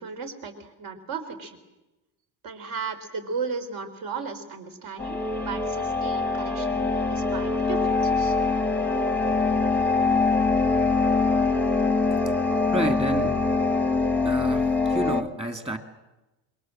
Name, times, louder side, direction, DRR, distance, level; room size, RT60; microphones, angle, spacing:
voice 1, 0.0-1.6 2.4-8.4, right 5 dB, 55° right, 6 dB, 4.0 m, -35 dB
sound 1, 5.0-15.2, left 3 dB, 5° left, 1.1 m, -23 dB
voice 2, 12.7-13.4 14.2-15.8, right 1 dB, 15° right, 7 dB, 2.3 m, -28 dB
27.0 x 23.0 x 7.7 m, 1.0 s
cardioid pair, 155°, 40 cm